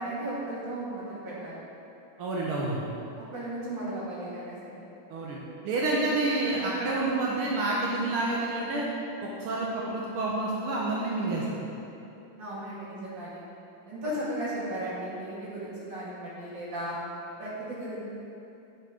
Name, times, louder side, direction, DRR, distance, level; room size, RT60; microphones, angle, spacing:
voice 1, 0.0-1.6 3.3-4.8 12.4-13.4 13.9-17.0 17.4-18.0, right 1 dB, 60° right, -8 dB, 3.0 m, -35 dB
voice 2, 2.2-2.9 5.1-8.9 9.2-11.6, right 2 dB, 90° right, -4 dB, 1.9 m, -29 dB
9.9 x 5.7 x 5.1 m, 2.8 s
omnidirectional pair, 2.3 m